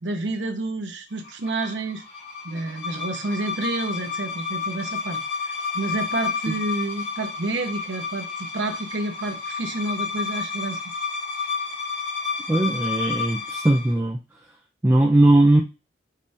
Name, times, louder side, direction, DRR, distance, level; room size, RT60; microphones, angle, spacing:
voice 1, 0.0-2.0 2.4-5.2 5.7-10.8, right 2 dB, 85° right, 5 dB, 0.9 m, -29 dB
sound 1, 1.2-13.9, left 5 dB, 75° left, 1.9 m, -31 dB
voice 2, 12.5-14.2 14.8-15.6, right 1 dB, 15° right, 1 dB, 0.4 m, -18 dB
5.3 x 3.2 x 2.7 m, 0.28 s
head